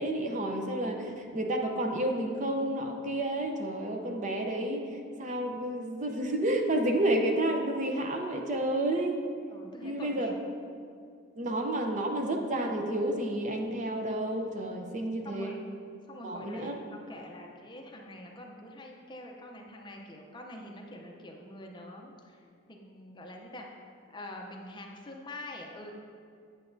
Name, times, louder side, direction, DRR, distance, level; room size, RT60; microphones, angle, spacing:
voice 1, 0.0-4.8 5.2-9.2 9.8-10.3 11.4-15.5 16.2-16.7, right 1 dB, 35° right, 3 dB, 0.6 m, -30 dB
voice 2, 9.5-10.3 14.8-15.6 16.1-23.7 24.1-25.9, left 1 dB, 20° left, 1 dB, 0.6 m, -45 dB
8.6 x 8.0 x 2.6 m, 2.3 s
head